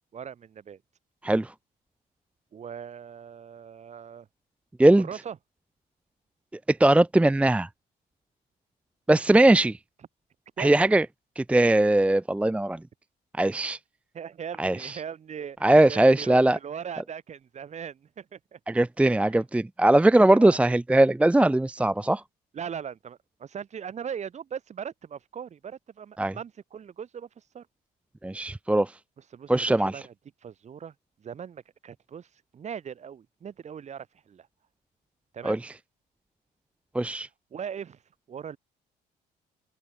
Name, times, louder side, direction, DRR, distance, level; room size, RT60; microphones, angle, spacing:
voice 1, 0.1-0.8 2.5-4.3 5.0-5.4 10.6-10.7 14.1-15.6 15.9-18.6 19.2-19.4 20.3-20.6 22.5-27.7 29.3-30.1 30.4-34.5 35.3-35.6 37.5-38.0 38.3-38.6, right 8 dB, 45° right, 3.4 m, -39 dB
voice 2, 6.7-7.7 9.1-9.8 10.6-11.0 11.4-12.8 13.4-13.8 14.6-15.0 15.6-16.6 18.7-22.2 26.2-26.3 28.2-28.9 29.5-30.0 35.4-35.7 36.9-37.3, right 1 dB, 5° right, 0.7 m, -20 dB
open air
cardioid pair, 110°, 17 cm